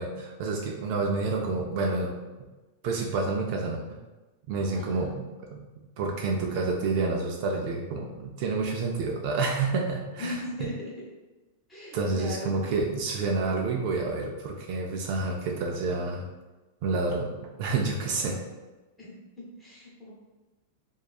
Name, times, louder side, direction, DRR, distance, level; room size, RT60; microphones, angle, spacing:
voice 1, 0.0-2.1 2.8-3.8 4.5-5.2 5.5-5.7 6.0-10.7 11.9-16.3 16.8-18.4, right 3 dB, 45° right, 0 dB, 0.3 m, -29 dB
voice 2, 4.7-5.1 10.2-10.9 11.7-12.8 19.0-20.1, left 1 dB, 10° left, -7 dB, 0.7 m, -38 dB
2.6 x 2.2 x 2.3 m, 1.1 s
supercardioid pair, 165°, 0 cm